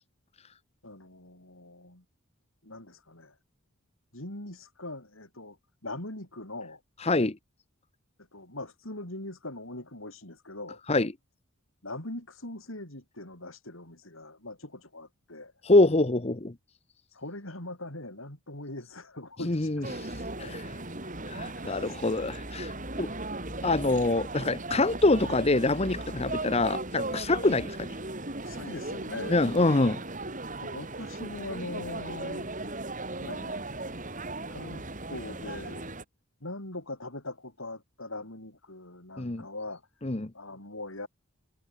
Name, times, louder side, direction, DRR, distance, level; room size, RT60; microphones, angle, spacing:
voice 1, 0.8-2.0 2.6-3.3 4.1-5.6 5.8-6.8 8.3-10.8 11.8-15.5 17.1-20.1 20.4-20.6 21.5-21.9 23.0-23.4 27.4-27.5 28.4-29.4 30.6-32.5 33.1-33.6 34.1-34.2 34.5-35.9 36.4-39.8 40.3-41.1, left 2 dB, 70° left, 6.7 m, -41 dB
voice 2, 7.0-7.4 10.9-11.1 15.6-16.5 19.4-20.7 21.3-23.1 23.6-27.6 29.3-30.0 39.2-39.4 40.0-40.3, left 2 dB, 30° left, 0.9 m, -25 dB
sound 1, 19.8-36.0, right 2 dB, 35° right, 4.8 m, -37 dB
sound 2, 20.1-27.5, equal, ahead, 2.9 m, -47 dB
head